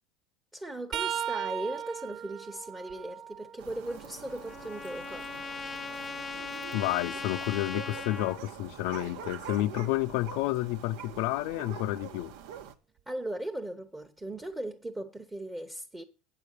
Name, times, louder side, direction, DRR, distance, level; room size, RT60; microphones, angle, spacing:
voice 1, 0.5-5.3 13.1-16.0, right 1 dB, 10° right, 0.9 m, -38 dB
sound 1, 0.9-4.7 5.2-7.2 10.1-10.3 11.5-11.7 13.0-13.1, right 10 dB, 45° right, 0.5 m, -39 dB
sound 2, 3.6-12.7, right 9 dB, 85° right, 1.2 m, -45 dB
Trumpet, 3.9-8.4, left 5 dB, 20° left, 0.5 m, -39 dB
voice 2, 6.7-12.3, left 17 dB, 75° left, 0.5 m, -30 dB
9.2 x 6.9 x 6.5 m
cardioid pair, 140°, 0 cm